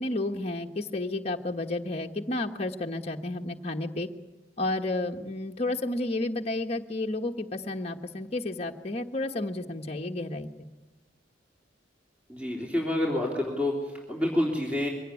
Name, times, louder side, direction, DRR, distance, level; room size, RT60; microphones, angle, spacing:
voice 1, 0.0-4.1 4.6-10.5, left 2 dB, 35° left, 2 dB, 1.3 m, -31 dB
voice 2, 12.3-14.9, left 1 dB, 5° right, -2 dB, 3.2 m, -28 dB
23.5 x 18.0 x 9.6 m, 1.1 s
head